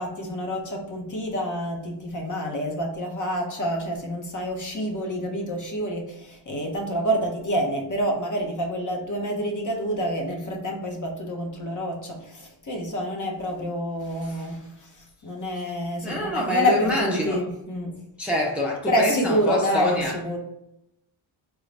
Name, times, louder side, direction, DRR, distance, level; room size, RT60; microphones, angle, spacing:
voice 1, 0.0-18.0 18.9-20.4, equal, 35° left, 0 dB, 1.0 m, -27 dB
voice 2, 16.0-17.4 18.2-20.1, equal, 5° right, -2 dB, 0.6 m, -26 dB
3.8 x 2.4 x 3.2 m, 0.84 s
cardioid pair, 80°, 50 cm